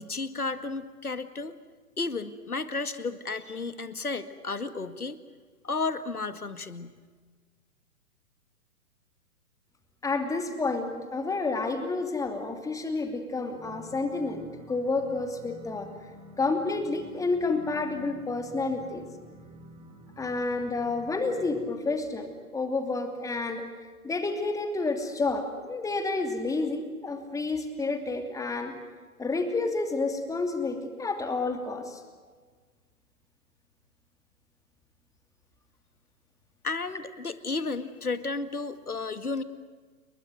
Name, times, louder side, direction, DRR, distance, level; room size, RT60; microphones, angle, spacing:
voice 1, 0.0-1.5 2.0-5.2 5.6-6.9 36.6-39.4, left 3 dB, 80° left, 12 dB, 2.0 m, -33 dB
voice 2, 10.0-15.9 16.4-19.1 20.2-23.6 24.0-28.7 29.2-32.0, left 3 dB, 5° left, 7 dB, 2.7 m, -30 dB
sound 1, 13.5-21.7, left 1 dB, 15° right, 4.1 m, -49 dB
29.5 x 22.5 x 7.9 m, 1.5 s
figure-of-eight pair, 120°, 44 cm